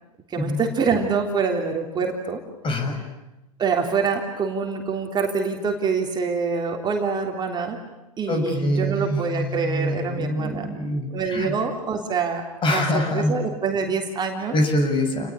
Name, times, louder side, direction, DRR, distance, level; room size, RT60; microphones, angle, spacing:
voice 1, 0.3-2.4 3.6-7.8 8.2-10.7 11.1-14.5, right 5 dB, 25° right, 2 dB, 3.4 m, -25 dB
voice 2, 2.6-3.1 8.3-11.5 12.6-13.3 14.5-15.3, left 1 dB, 30° left, 6 dB, 7.2 m, -24 dB
30.0 x 20.5 x 9.8 m, 0.96 s
hypercardioid pair, 95°, 18 cm